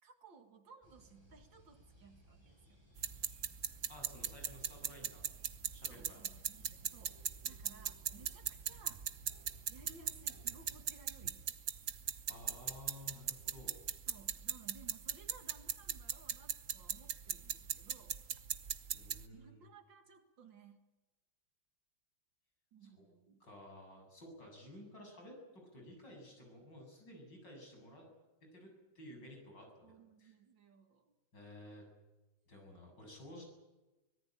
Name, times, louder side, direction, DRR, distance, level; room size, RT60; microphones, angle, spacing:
voice 1, 0.0-2.8 5.9-9.1 9.7-11.4 14.1-18.2 18.6-18.8 19.3-20.8 22.7-23.5 29.8-31.1, right 5 dB, 65° right, 7 dB, 2.7 m, -60 dB
sound 1, 0.8-10.8, equal, 10° right, 6.4 m, -62 dB
sound 2, 3.0-19.2, right 8 dB, 50° right, 1.1 m, -40 dB
voice 2, 3.9-5.3 5.7-6.3 12.3-13.8 18.9-19.6 23.4-28.0 28.5-28.7 28.9-30.3 31.3-31.8 32.5-33.4, left 1 dB, 60° left, 2 dB, 8.3 m, -53 dB
24.5 x 18.5 x 9.0 m, 1.1 s
omnidirectional pair, 2.2 m